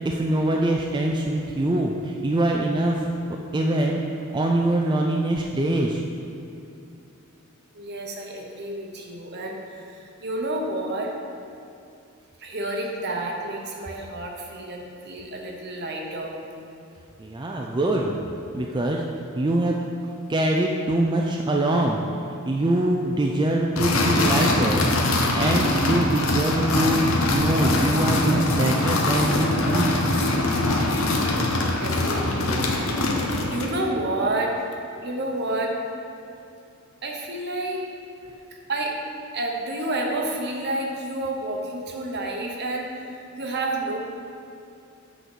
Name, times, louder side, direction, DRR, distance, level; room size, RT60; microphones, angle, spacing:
voice 1, 0.0-3.1 3.5-4.0 4.3-6.0 17.2-18.1 18.5-19.0 19.4-19.8 20.3-24.9 25.3-27.0 27.3-30.1, right 1 dB, 20° right, -1 dB, 0.4 m, -23 dB
voice 2, 7.7-11.1 12.4-16.3 31.7-34.5 35.0-35.7 37.0-37.9 38.7-38.9 39.3-44.0, right 1 dB, 55° right, 1 dB, 1.0 m, -30 dB
sound 1, 23.8-33.8, left 2 dB, 75° left, 0.9 m, -23 dB
8.0 x 3.9 x 6.1 m, 2.6 s
head